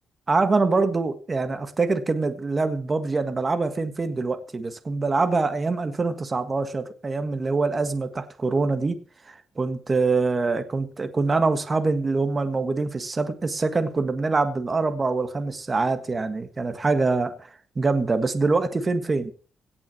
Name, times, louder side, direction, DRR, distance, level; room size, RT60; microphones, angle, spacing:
voice 1, 0.3-9.0 9.3-17.5 17.7-19.3, right 3 dB, 30° right, 1.5 m, -24 dB
17.5 x 6.1 x 8.5 m
cardioid pair, 115°, 0 cm